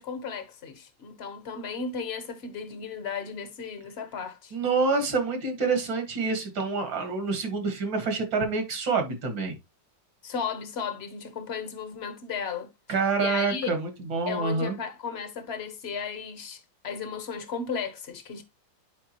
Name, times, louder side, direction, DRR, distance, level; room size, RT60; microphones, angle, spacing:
voice 1, 0.0-4.5 10.2-12.7 13.2-13.7 14.3-18.4, left 6 dB, 45° left, 1.0 m, -35 dB
voice 2, 4.5-9.5 12.9-14.8, right 4 dB, 75° right, 2.5 m, -27 dB
9.2 x 4.8 x 2.9 m
omnidirectional pair, 2.1 m